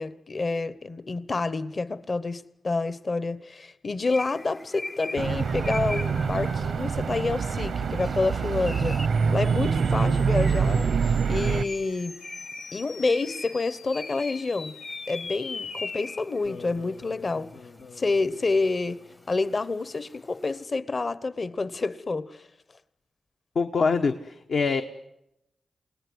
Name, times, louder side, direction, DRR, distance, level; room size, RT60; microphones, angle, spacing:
voice 1, 0.0-12.2 12.7-14.7 15.1-17.5 18.0-19.0 19.3-22.4, left 3 dB, 50° left, 1.1 m, -28 dB
sound 1, 4.0-20.6, left 2 dB, 25° left, 0.8 m, -43 dB
sound 2, 5.2-11.6, right 5 dB, 80° right, 0.8 m, -25 dB
sound 3, 9.0-19.6, left 4 dB, 90° left, 1.6 m, -43 dB
voice 2, 23.5-24.8, left 4 dB, 70° left, 1.1 m, -24 dB
28.5 x 18.5 x 8.1 m
cardioid pair, 55°, 0 cm